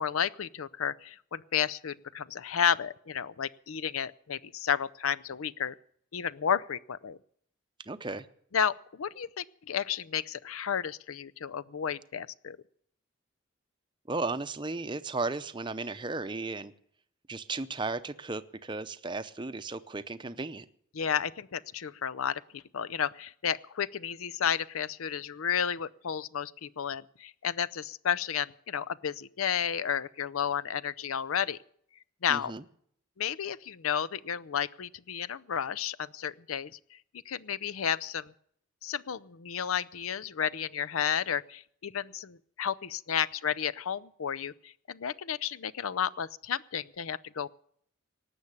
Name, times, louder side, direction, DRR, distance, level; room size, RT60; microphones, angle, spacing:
voice 1, 0.0-5.7 6.1-7.2 8.5-12.6 20.9-31.6 32.2-32.5 33.2-36.7 37.3-38.3 38.8-47.5, left 8 dB, 90° left, 17 dB, 0.6 m, -32 dB
voice 2, 7.9-8.3 14.1-16.7 17.3-20.7 32.3-32.6, right 3 dB, 20° right, 12 dB, 0.6 m, -35 dB
18.5 x 7.1 x 9.8 m, 0.65 s
head